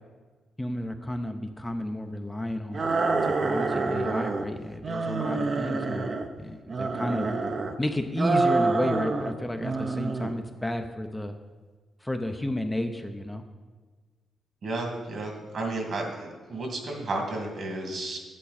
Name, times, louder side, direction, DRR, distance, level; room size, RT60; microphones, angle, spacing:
voice 1, 0.6-7.3 7.8-11.3 12.0-13.4, left 1 dB, 10° left, 6 dB, 0.6 m, -32 dB
sound 1, 2.7-4.5 4.8-6.3 6.7-7.8 8.2-9.3 9.6-10.4, right 3 dB, 45° right, 0.8 m, -27 dB
voice 2, 14.6-18.2, right 2 dB, 60° right, 1 dB, 2.1 m, -32 dB
9.1 x 8.5 x 4.1 m, 1.4 s
cardioid pair, 85°, 0 cm